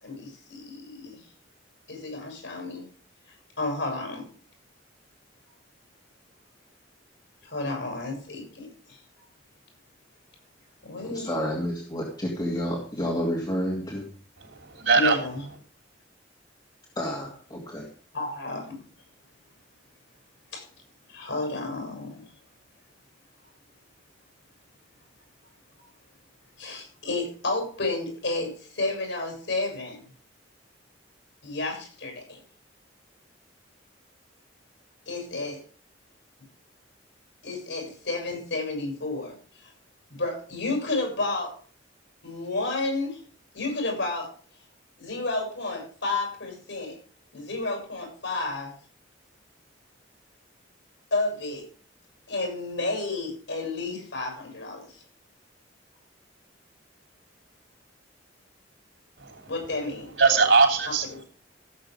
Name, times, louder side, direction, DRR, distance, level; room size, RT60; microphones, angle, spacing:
voice 1, 0.0-1.2 1.9-2.9 3.6-4.3 7.4-9.0 10.8-11.3 15.0-15.4 18.1-18.8 20.5-20.7 21.1-22.2 25.8-25.9 26.6-30.0 31.4-32.4 35.1-35.6 37.4-39.4 39.6-39.7 40.1-41.6 42.2-43.2 43.5-44.3 45.0-47.0 47.3-48.7 51.1-51.7 52.3-55.0 59.5-60.1 60.9-61.2, left 2 dB, 75° left, 3 dB, 7.2 m, -31 dB
voice 2, 11.1-14.1 17.0-17.9, equal, 25° left, -2 dB, 2.6 m, -30 dB
voice 3, 14.4-15.2 59.2-59.5 60.2-61.1, right 4 dB, 85° right, 2 dB, 3.4 m, -21 dB
16.0 x 7.8 x 5.1 m, 0.42 s
head